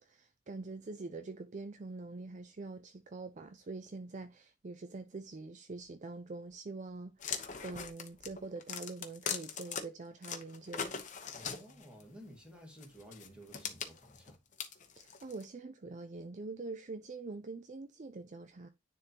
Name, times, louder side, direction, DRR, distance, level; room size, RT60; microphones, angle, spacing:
voice 1, 0.0-10.9 15.0-18.7, right 3 dB, 40° right, 0.5 m, -45 dB
sound 1, 7.2-9.8 10.2-12.0 12.8-15.4, left 7 dB, 40° left, 0.9 m, -40 dB
voice 2, 11.3-14.4, equal, 5° right, 2.1 m, -53 dB
9.8 x 3.7 x 2.9 m
head